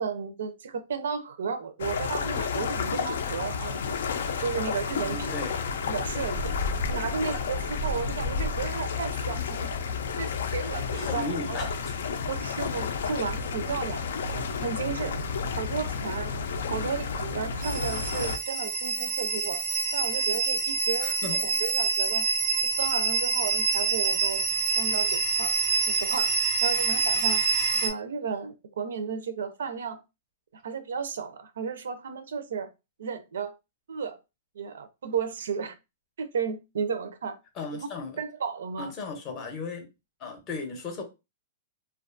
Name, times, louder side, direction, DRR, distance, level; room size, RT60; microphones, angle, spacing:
voice 1, 0.0-3.8 4.4-5.3 5.9-6.5 6.9-9.7 10.2-11.7 12.3-14.0 14.3-15.2 15.6-16.3 16.7-19.6 19.9-21.1 21.4-22.3 22.6-24.4 24.8-25.5 25.9-26.3 26.6-27.4 27.8-30.0 30.6-32.7 33.0-33.5 33.9-34.2 34.6-35.7 36.2-37.4 37.7-37.9 38.2-38.9, right 6 dB, 85° right, 0.5 m, -33 dB
sound 1, 1.8-18.4, left 5 dB, 80° left, 0.4 m, -31 dB
voice 2, 5.0-5.6 10.9-11.8 21.0-21.4 37.5-38.2 38.8-39.9 40.2-41.0, left 3 dB, 25° left, 0.6 m, -36 dB
sound 2, 17.6-27.9, right 4 dB, 25° right, 0.4 m, -26 dB
2.5 x 2.3 x 2.4 m
hypercardioid pair, 170°, 0 cm